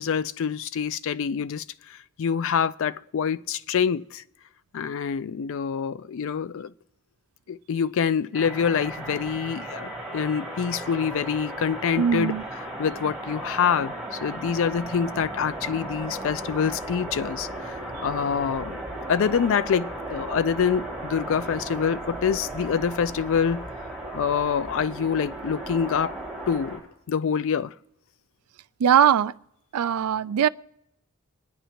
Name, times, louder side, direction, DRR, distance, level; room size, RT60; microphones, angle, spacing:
voice 1, 0.0-4.2 4.7-6.7 7.5-12.3 12.8-18.8 19.1-23.7 24.1-26.1 26.5-26.8 27.1-27.7, left 7 dB, 60° left, 0.4 m, -26 dB
sound 1, 8.3-26.8, right 1 dB, ahead, 3.5 m, -36 dB
voice 2, 12.0-12.4 28.8-29.3 29.7-30.5, right 8 dB, 80° right, 0.4 m, -20 dB
25.5 x 10.0 x 2.9 m
head